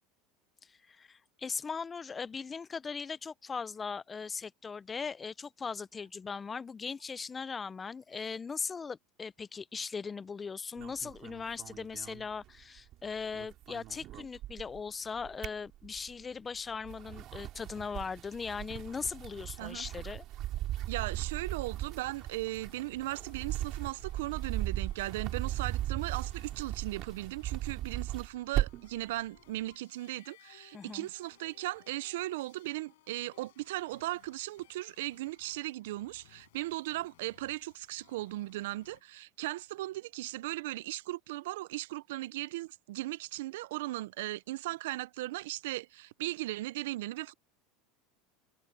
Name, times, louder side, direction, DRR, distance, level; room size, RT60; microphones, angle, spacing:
voice 1, 0.7-20.3 30.7-31.1, left 5 dB, 20° left, 0.4 m, -39 dB
sound 1, 10.8-12.9 13.2-14.8 15.2-16.2 16.7-29.0, right 14 dB, 45° right, 2.2 m, -38 dB
sound 2, 20.8-39.0, left 17 dB, 90° left, 6.5 m, -62 dB
voice 2, 20.9-47.3, right 17 dB, 85° right, 0.4 m, -37 dB
supercardioid pair, 135°, 0 cm